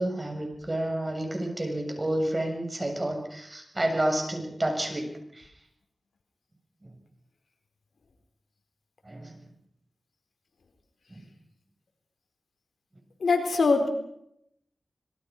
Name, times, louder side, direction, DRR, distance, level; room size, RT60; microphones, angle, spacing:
voice 1, 0.0-5.5 6.8-6.9 9.0-9.4 11.1-11.2, right 1 dB, 30° right, 3 dB, 7.4 m, -30 dB
voice 2, 13.2-13.9, left 4 dB, 85° left, 5 dB, 4.3 m, -22 dB
26.5 x 22.0 x 5.5 m, 0.75 s
wide cardioid pair, 65°, 0 cm